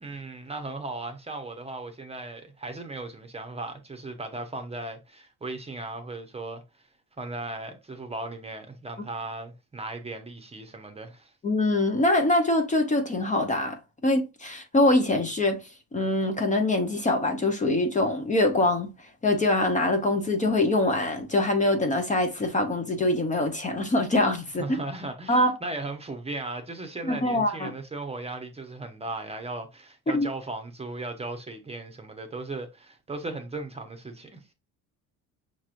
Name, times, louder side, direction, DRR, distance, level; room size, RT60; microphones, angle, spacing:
voice 1, 0.0-6.6 7.2-11.3 24.6-34.4, right 2 dB, 15° right, 0.9 m, -37 dB
voice 2, 11.4-13.8 14.0-15.6 15.9-18.9 19.2-24.6 25.3-25.5 27.0-27.7 30.1-30.3, left 2 dB, 20° left, 0.8 m, -24 dB
5.9 x 3.0 x 2.5 m
cardioid pair, 115°, 35 cm